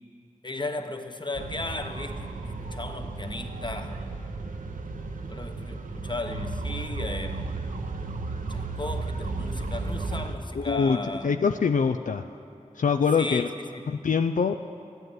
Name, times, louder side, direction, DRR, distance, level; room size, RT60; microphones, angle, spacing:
voice 1, 0.4-4.0 5.3-7.5 8.5-11.5 13.2-14.0, left 2 dB, 35° left, 6 dB, 1.2 m, -36 dB
sound 1, 1.3-10.4, right 3 dB, 90° right, 0.8 m, -34 dB
voice 2, 10.6-11.0 11.2-12.2 12.8-13.5 13.9-14.6, left 5 dB, 75° left, 7 dB, 0.4 m, -24 dB
13.5 x 9.2 x 9.1 m, 2.5 s
cardioid pair, 40°, 13 cm